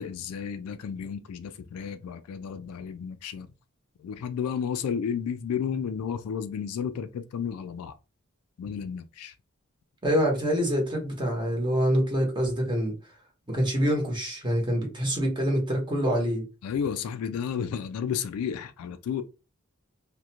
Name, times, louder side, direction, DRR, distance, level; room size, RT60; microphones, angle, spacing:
voice 1, 0.0-3.5 4.0-7.9 8.6-9.3 16.6-19.2, left 7 dB, 90° left, 0.3 m, -32 dB
voice 2, 10.0-12.9 13.5-16.4, equal, 20° right, 0.9 m, -25 dB
2.4 x 2.1 x 2.8 m
head